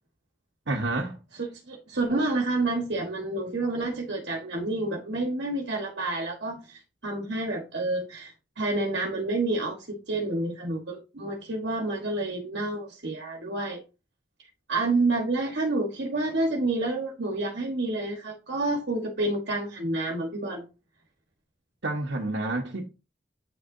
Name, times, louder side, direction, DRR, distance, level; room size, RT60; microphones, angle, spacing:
voice 1, 0.7-1.2 21.8-22.8, right 2 dB, 85° right, 1.2 m, -29 dB
voice 2, 1.4-13.8 14.7-20.7, right 2 dB, 65° right, 1.4 m, -29 dB
8.7 x 6.5 x 2.7 m
head